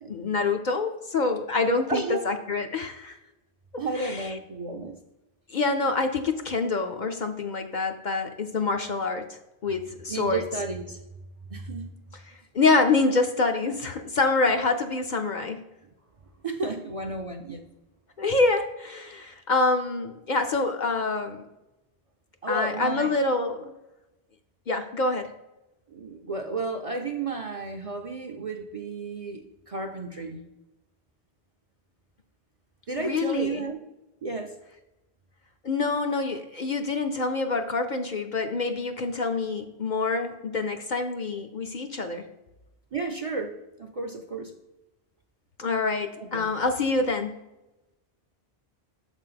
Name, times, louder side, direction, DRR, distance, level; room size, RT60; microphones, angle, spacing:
voice 1, 0.1-3.1 4.0-4.3 5.5-9.3 9.6-10.4 12.2-15.6 18.2-21.5 22.5-23.7 24.7-25.3 33.0-33.7 35.6-42.2 45.6-47.4, left 3 dB, 55° left, 5 dB, 0.6 m, -26 dB
voice 2, 1.9-2.4 3.8-5.0 10.1-11.0 11.5-11.9 14.5-14.6 16.4-17.6 22.4-23.2 25.9-30.4 32.9-33.8 34.2-34.6 42.9-44.5 46.2-46.5, right 3 dB, 40° right, 3 dB, 0.5 m, -32 dB
6.9 x 4.0 x 5.7 m, 0.98 s
omnidirectional pair, 1.1 m